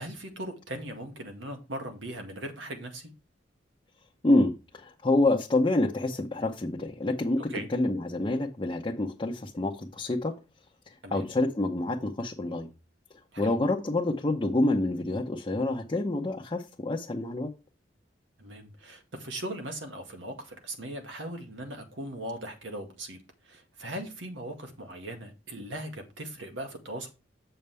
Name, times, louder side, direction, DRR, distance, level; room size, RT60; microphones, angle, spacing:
voice 1, 0.0-3.1 7.5-7.7 11.0-11.3 13.3-13.6 18.4-23.2 23.4-27.1, right 1 dB, 80° right, 1.9 m, -39 dB
voice 2, 4.2-10.4 10.9-12.7 13.4-17.5, left 2 dB, 25° left, 0.8 m, -27 dB
7.8 x 6.8 x 3.4 m
head